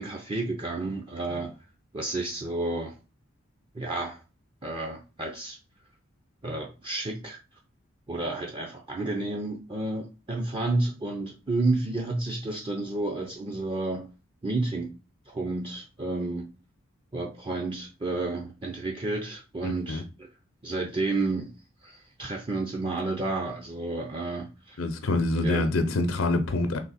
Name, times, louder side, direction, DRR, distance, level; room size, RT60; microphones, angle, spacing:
voice 1, 0.0-1.5 1.9-3.0 3.7-4.2 4.6-5.6 6.4-7.4 8.1-14.1 14.4-15.0 15.3-16.5 17.1-20.3 20.6-21.5 21.8-24.8 25.3-25.7, right 2 dB, 25° right, 0.5 m, -31 dB
voice 2, 19.6-20.0 24.8-26.8, left 2 dB, 80° left, 0.6 m, -26 dB
3.8 x 2.8 x 4.0 m
head